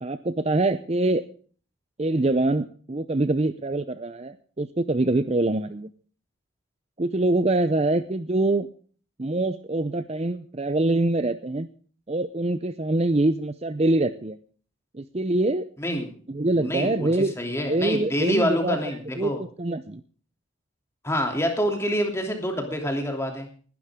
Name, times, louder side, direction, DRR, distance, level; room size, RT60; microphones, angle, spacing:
voice 1, 0.0-1.2 2.0-5.9 7.0-8.7 9.2-11.7 12.1-14.4 14.9-15.7 16.3-18.8 19.1-19.3 19.6-20.0, right 2 dB, 30° right, 12 dB, 0.6 m, -24 dB
voice 2, 15.8-16.1 16.5-17.1 17.4-19.4 21.0-23.5, equal, 15° left, 3 dB, 2.9 m, -26 dB
20.0 x 12.0 x 3.7 m, 0.43 s
head